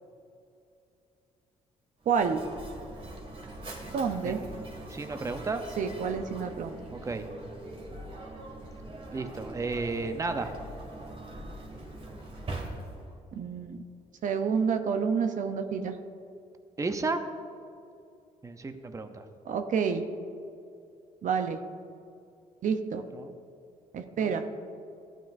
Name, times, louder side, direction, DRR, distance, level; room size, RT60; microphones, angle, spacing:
Mechanisms, 2.0-13.2, right 1 dB, 40° right, 2.1 m, -42 dB
voice 1, 2.1-2.4 3.9-4.4 5.8-6.8 13.3-13.8 14.2-15.9 19.5-20.0 21.2-21.6 22.6-23.0 23.9-24.4, right 6 dB, 60° right, 6 dB, 0.7 m, -28 dB
voice 2, 4.2-5.6 6.9-7.2 9.1-10.5 16.8-17.2 18.4-19.3 23.1-23.3 24.2-24.3, right 3 dB, 20° right, 7 dB, 0.7 m, -33 dB
14.5 x 9.0 x 2.6 m, 2.6 s
cardioid pair, 80°, 14 cm